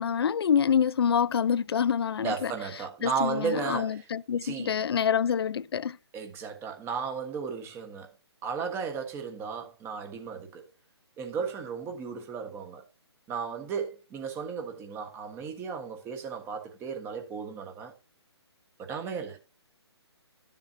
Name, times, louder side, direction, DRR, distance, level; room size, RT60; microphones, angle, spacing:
voice 1, 0.0-2.5 3.0-6.0, left 7 dB, 60° left, 0.4 m, -26 dB
voice 2, 2.2-4.0 4.4-4.7 6.1-8.1 8.4-10.6 11.2-12.8 13.3-17.9 18.8-19.4, right 6 dB, 15° right, 1.4 m, -34 dB
12.5 x 7.3 x 2.8 m
figure-of-eight pair, 140°, 14 cm